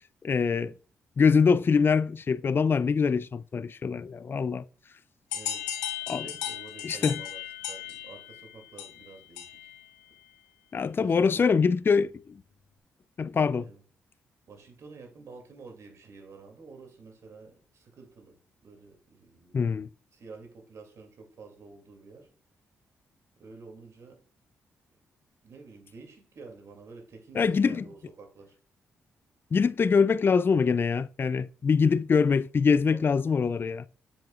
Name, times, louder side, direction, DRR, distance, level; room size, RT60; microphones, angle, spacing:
voice 1, 0.2-0.7 1.2-4.6 6.1-6.3 6.8-7.1 10.7-12.4 13.2-13.7 19.5-19.9 27.4-27.8 29.5-33.9, left 5 dB, 40° left, 0.4 m, -24 dB
sound 1, 5.3-9.8, left 11 dB, 90° left, 0.7 m, -36 dB
voice 2, 5.3-5.7 6.2-9.7 11.0-11.5 13.6-13.8 14.5-19.8 20.1-22.3 23.4-24.2 25.4-28.6 32.9-33.1, right 4 dB, 60° right, 2.5 m, -49 dB
7.4 x 7.2 x 2.4 m
hypercardioid pair, 45°, 6 cm